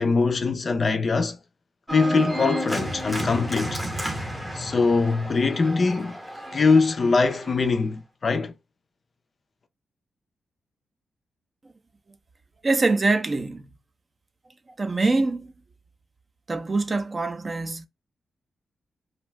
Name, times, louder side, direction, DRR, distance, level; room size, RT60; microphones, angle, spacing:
voice 1, 0.0-1.4 1.9-3.8 4.5-6.2 6.5-8.5, left 4 dB, 40° left, 0.4 m, -22 dB
Organ, 1.9-7.5, equal, 5° right, 0.7 m, -31 dB
voice 2, 12.6-13.7 14.8-15.5 16.5-17.9, right 3 dB, 30° right, 0.4 m, -24 dB
2.6 x 2.2 x 3.1 m
wide cardioid pair, 135°, 0 cm